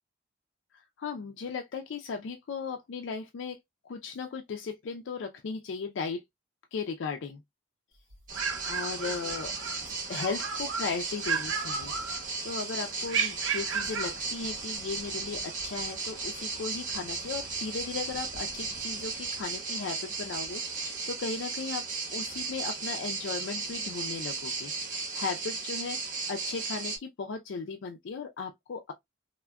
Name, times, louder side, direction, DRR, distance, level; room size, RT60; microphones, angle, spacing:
voice 1, 0.7-3.6 3.8-6.2 6.7-7.4 8.7-9.5 10.1-11.9 12.4-21.9 22.1-28.9, left 5 dB, 70° left, 0.4 m, -36 dB
sound 1, 8.1-9.8 10.1-10.9 11.2-12.5 13.1-14.2, right 6 dB, 80° right, 0.7 m, -33 dB
sound 2, 8.3-27.0, right 4 dB, 45° right, 1.1 m, -35 dB
3.4 x 2.1 x 2.2 m
head